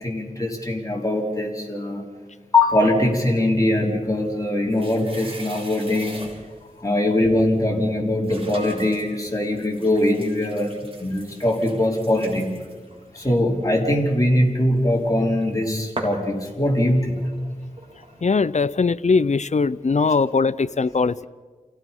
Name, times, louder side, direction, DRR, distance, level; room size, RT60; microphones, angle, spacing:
voice 1, 0.0-2.0 2.5-6.2 6.8-10.7 11.0-12.5 13.1-17.3, left 1 dB, 25° left, -1 dB, 4.2 m, -21 dB
sound 1, 4.1-6.7 7.5-7.6 8.2-15.5 16.0-18.3, right 1 dB, 40° right, 3.7 m, -40 dB
voice 2, 18.2-21.3, left 4 dB, 55° left, 14 dB, 0.6 m, -20 dB
29.0 x 16.5 x 5.4 m, 1.4 s
wide cardioid pair, 50°, 15 cm